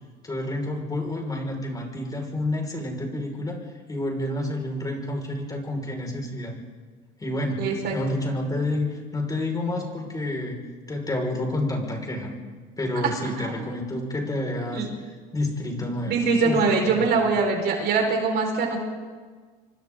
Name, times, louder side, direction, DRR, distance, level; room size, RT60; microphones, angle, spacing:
voice 1, 0.2-3.6 3.9-6.6 7.2-10.6 10.9-12.3 12.8-14.9 15.3-17.3, left 1 dB, 15° left, 1 dB, 5.5 m, -29 dB
voice 2, 7.6-8.0 13.4-13.8 14.7-14.9 16.1-18.8, right 4 dB, 55° right, 2 dB, 5.1 m, -23 dB
27.5 x 24.5 x 3.9 m, 1.5 s
supercardioid pair, 110°, 21 cm